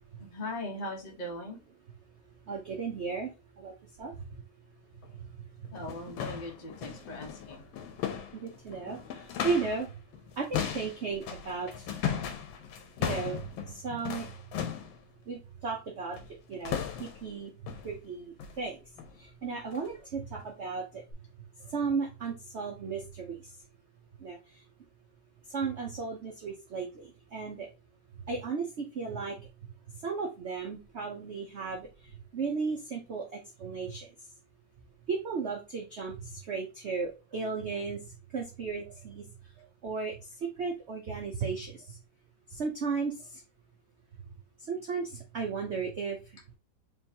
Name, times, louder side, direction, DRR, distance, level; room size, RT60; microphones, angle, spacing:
voice 1, 0.2-1.6 5.7-7.6, left 1 dB, 35° left, 0 dB, 0.7 m, -39 dB
voice 2, 2.5-3.3 3.6-4.4 8.3-9.9 10.4-11.9 13.0-14.3 15.3-16.2 16.5-17.5 17.8-18.8 19.2-21.0 21.6-23.4 24.2-24.4 25.5-27.7 28.2-29.4 30.0-31.9 32.3-34.1 35.1-38.0 38.3-39.2 39.6-42.0 42.5-43.4 44.7-46.2, right 5 dB, 70° right, 1 dB, 0.6 m, -35 dB
sound 1, 5.0-5.1 5.6-9.9 10.1-15.0 16.1-16.4 16.6-17.3 17.7-18.0 18.4-18.6 19.0-19.2 19.7-19.9 20.4-20.5 21.1-21.2, left 8 dB, 80° left, 1.5 m, -37 dB
4.6 x 3.3 x 2.8 m, 0.28 s
omnidirectional pair, 2.2 m